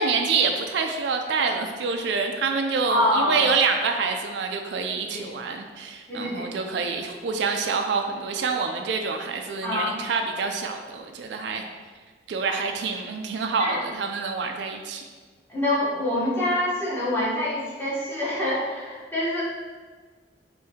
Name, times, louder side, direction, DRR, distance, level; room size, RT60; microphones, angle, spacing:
voice 1, 0.0-11.6 12.3-15.0, right 4 dB, 65° right, 4 dB, 0.3 m, -26 dB
voice 2, 2.9-3.5 5.1-5.3 6.1-6.4 9.6-10.0 13.6-13.8 15.5-19.4, left 1 dB, 10° left, -8 dB, 1.0 m, -25 dB
4.5 x 2.6 x 3.4 m, 1.5 s
head